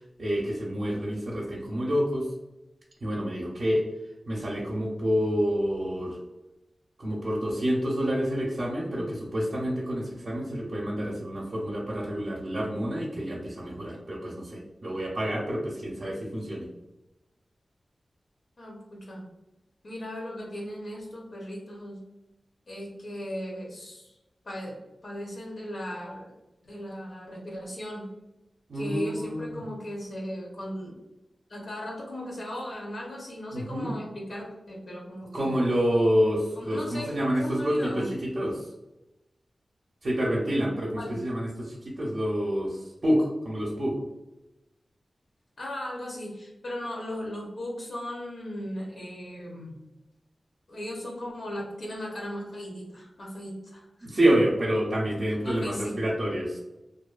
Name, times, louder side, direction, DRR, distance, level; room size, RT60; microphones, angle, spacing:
voice 1, 0.2-2.3 3.0-3.8 4.3-6.2 7.0-16.7 28.7-29.6 33.5-33.9 35.3-38.7 40.0-44.0 54.0-56.6, equal, 55° right, -5 dB, 0.5 m, -28 dB
voice 2, 18.6-19.3 19.8-22.0 22.7-24.1 24.4-26.3 26.6-28.1 28.7-31.0 31.5-35.6 36.5-38.1 41.0-41.1 45.6-49.8 50.7-54.1 55.4-55.9, equal, 65° left, -3 dB, 0.8 m, -37 dB
2.5 x 2.2 x 2.4 m, 0.96 s
wide cardioid pair, 120°, 0 cm